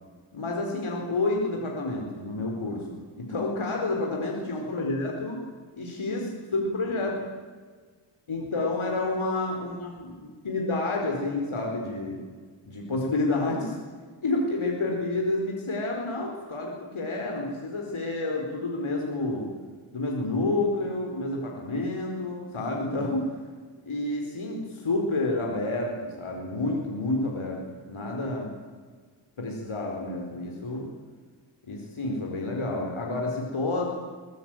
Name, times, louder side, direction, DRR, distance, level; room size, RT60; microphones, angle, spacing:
voice 1, 0.3-5.4 5.8-7.2 8.3-12.2 12.6-13.8 14.2-19.5 19.9-23.4 23.9-28.5 29.4-30.9 31.6-33.9, left 2 dB, 75° left, 0 dB, 4.4 m, -29 dB
23.0 x 22.0 x 9.0 m, 1.5 s
wide cardioid pair, 85°, 49 cm